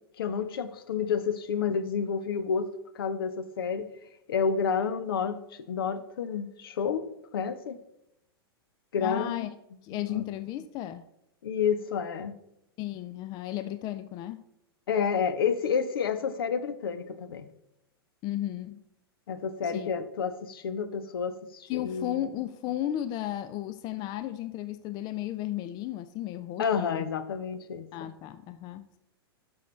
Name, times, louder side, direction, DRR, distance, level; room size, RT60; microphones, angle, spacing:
voice 1, 0.2-2.7 2.9-3.9 4.3-7.1 7.3-7.8 8.9-9.5 9.9-10.2 11.4-12.3 14.9-17.5 19.3-22.2 26.6-28.1, left 6 dB, 65° left, 0.7 m, -30 dB
voice 2, 9.0-9.5 9.8-11.0 12.8-14.4 18.2-18.8 19.6-19.9 21.7-27.1 27.9-29.0, left 13 dB, 30° left, 0.4 m, -34 dB
11.5 x 6.2 x 3.2 m
figure-of-eight pair, 100°, 13 cm